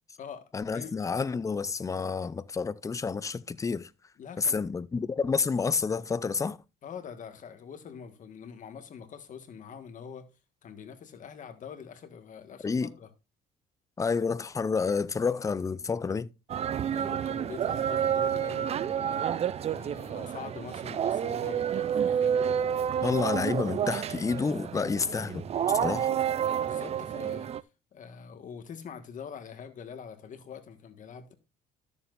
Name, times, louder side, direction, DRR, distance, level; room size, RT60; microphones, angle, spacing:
voice 1, 0.5-3.9 4.4-6.6 12.6-12.9 14.0-16.3 23.0-26.1, left 5 dB, 20° left, 0.5 m, -29 dB
voice 2, 4.2-4.7 6.8-10.3 10.6-13.1 16.9-19.2 19.6-22.4 25.8-26.2 26.6-27.5 27.9-31.3, left 7 dB, 50° left, 1.5 m, -44 dB
sound 1, 16.5-27.6, right 9 dB, 40° right, 0.4 m, -29 dB
13.0 x 7.1 x 2.5 m
cardioid pair, 110°, 17 cm